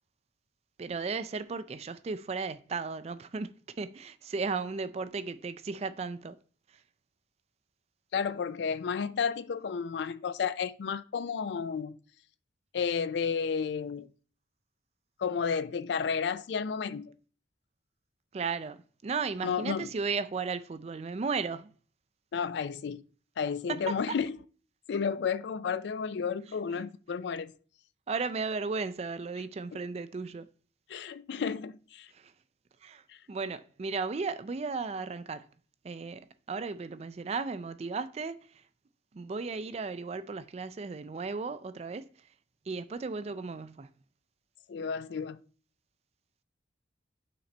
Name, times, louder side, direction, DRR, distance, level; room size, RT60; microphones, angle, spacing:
voice 1, 0.8-6.4 18.3-21.7 23.7-24.0 26.7-26.8 28.1-30.5 32.1-32.3 32.8-33.0 33.3-35.5 35.8-38.6 39.1-42.1 42.7-43.9, right 4 dB, 35° right, 0.3 m, -35 dB
voice 2, 8.1-12.0 12.7-14.1 15.2-17.1 19.4-19.9 22.3-23.0 23.4-24.4 24.9-27.5 30.9-32.1 33.1-33.2 44.7-45.4, left 6 dB, 70° left, 0.4 m, -32 dB
5.9 x 3.9 x 4.2 m
head